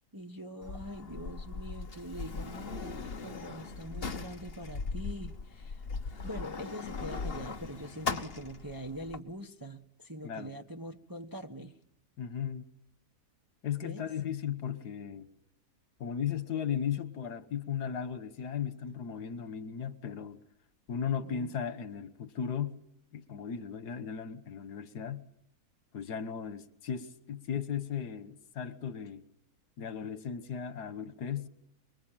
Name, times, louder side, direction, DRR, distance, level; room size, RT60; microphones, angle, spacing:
voice 1, 0.1-5.8 6.2-11.8 13.8-14.0 21.2-21.5, equal, 15° right, 1.0 m, -43 dB
Sliding door, 0.6-9.2, left 4 dB, 40° left, 1.4 m, -39 dB
voice 2, 12.2-12.7 13.6-15.3 16.0-20.4 20.9-22.8 23.1-25.3 25.9-29.2 29.8-31.5, left 8 dB, 85° left, 1.8 m, -36 dB
25.5 x 23.5 x 9.0 m
omnidirectional pair, 1.7 m